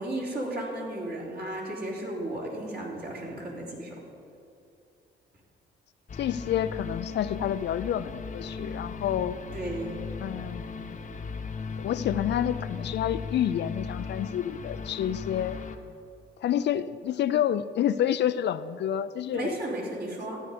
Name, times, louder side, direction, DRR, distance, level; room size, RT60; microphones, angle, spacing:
voice 1, 0.0-4.0 9.5-9.9 19.3-20.4, right 1 dB, 50° right, -3 dB, 3.4 m, -34 dB
sound 1, 6.1-15.8, left 4 dB, 40° left, 1.0 m, -37 dB
voice 2, 6.2-9.4 10.2-11.0 11.8-15.6 16.4-19.5, left 10 dB, 60° left, 13 dB, 0.4 m, -29 dB
13.0 x 9.3 x 5.1 m, 2.6 s
cardioid pair, 90°, 20 cm